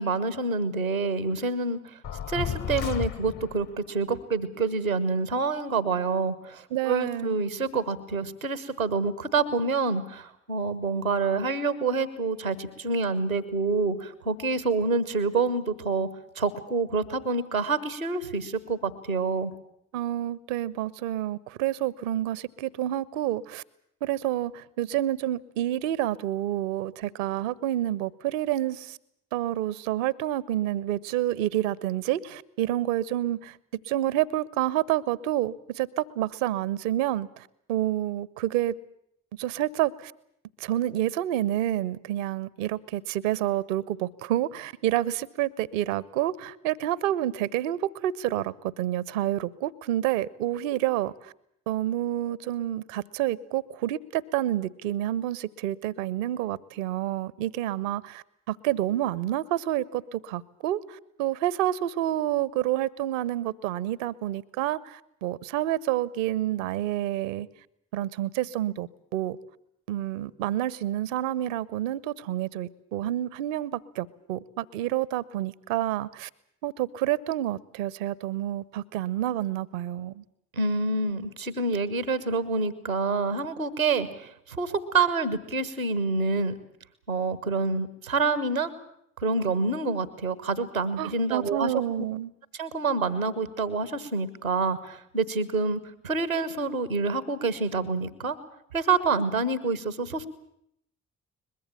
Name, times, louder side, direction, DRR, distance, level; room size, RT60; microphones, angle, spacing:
voice 1, 0.0-1.8 2.3-16.1 16.4-19.5 80.5-86.5 87.1-88.7 89.2-91.7 92.6-98.4 98.7-100.3, right 4 dB, 85° right, 16 dB, 1.1 m, -27 dB
sound 1, 2.0-3.7, left 9 dB, 50° left, 1.2 m, -32 dB
voice 2, 6.7-7.4 19.9-23.6 24.0-29.0 29.3-38.8 39.3-40.1 40.6-51.3 51.7-67.5 67.9-69.4 69.9-76.3 76.6-80.2 91.0-92.3, right 13 dB, 70° right, 22 dB, 0.9 m, -29 dB
22.5 x 21.5 x 7.2 m, 0.73 s
figure-of-eight pair, 40°, 40 cm